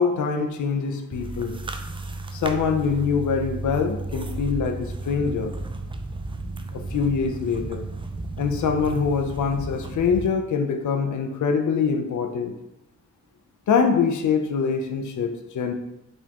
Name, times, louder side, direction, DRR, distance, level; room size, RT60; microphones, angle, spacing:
voice 1, 0.0-1.6 2.3-5.5 6.7-7.9 8.4-12.5 13.7-15.7, left 5 dB, 70° left, 4 dB, 0.5 m, -24 dB
sound 1, 1.1-10.3, right 2 dB, 15° right, 0.3 m, -33 dB
4.2 x 3.5 x 2.9 m, 0.89 s
wide cardioid pair, 95°, 31 cm